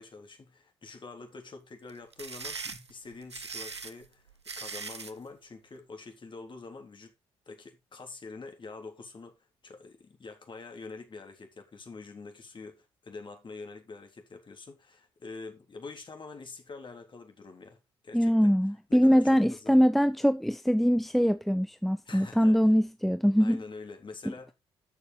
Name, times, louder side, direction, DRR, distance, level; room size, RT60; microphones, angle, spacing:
voice 1, 0.0-4.3 4.6-7.1 7.5-9.3 9.6-17.8 18.0-18.5 18.9-19.8 22.1-22.7 23.4-24.5, left 3 dB, 35° left, 3.6 m, -46 dB
sound 1, 1.9-5.2, right 4 dB, 90° right, 0.5 m, -40 dB
voice 2, 18.1-23.6, equal, ahead, 0.7 m, -23 dB
13.0 x 6.7 x 4.0 m
figure-of-eight pair, 45°, 14 cm